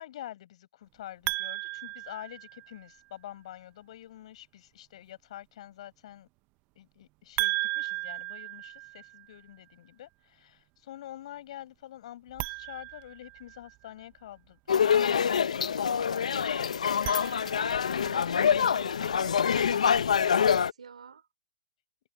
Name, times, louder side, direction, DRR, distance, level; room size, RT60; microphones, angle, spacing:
voice 1, 0.0-6.3 6.7-14.6 14.8-16.4, left 12 dB, 65° left, 7.0 m, -47 dB
sound 1, 1.3-3.0 7.4-9.4 12.3-13.9 16.8-18.0, right 24 dB, 40° right, 0.7 m, -35 dB
sound 2, 14.7-20.7, left 7 dB, 85° left, 0.8 m, -25 dB
voice 2, 18.0-21.3, right 6 dB, 85° right, 3.2 m, -49 dB
hypercardioid pair, 115°, 4 cm